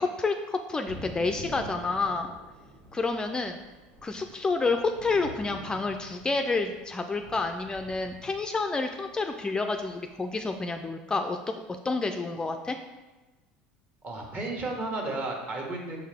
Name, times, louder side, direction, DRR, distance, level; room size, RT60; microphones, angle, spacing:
voice 1, 0.0-2.4 2.9-3.6 4.0-11.4 11.8-12.8, left 3 dB, 20° left, 6 dB, 0.3 m, -29 dB
Thunder / Rain, 0.9-10.8, right 1 dB, 75° right, 1.5 m, -46 dB
voice 2, 14.0-16.0, right 2 dB, 40° right, 0 dB, 1.4 m, -33 dB
5.8 x 4.7 x 3.5 m, 1.1 s
supercardioid pair, 100°, 4 cm